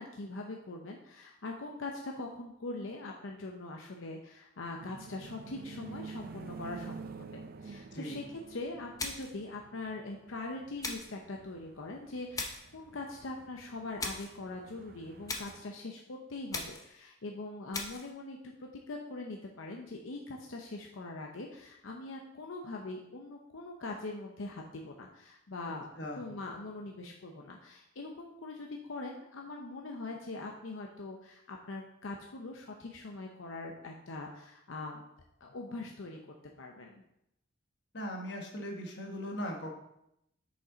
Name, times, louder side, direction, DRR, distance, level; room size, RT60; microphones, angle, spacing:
voice 1, 0.0-35.0 35.4-36.2 36.6-37.0, left 2 dB, 85° left, 1 dB, 0.7 m, -42 dB
sound 1, 4.8-15.6, right 5 dB, 45° right, 0.4 m, -49 dB
sound 2, 9.0-9.4 10.8-11.2 12.3-12.7 14.0-14.4 15.3-15.6 16.5-16.9 17.7-18.1, left 3 dB, 15° left, 0.7 m, -38 dB
voice 2, 37.9-39.7, equal, 55° left, 1 dB, 1.3 m, -39 dB
6.5 x 5.3 x 3.9 m, 0.80 s
head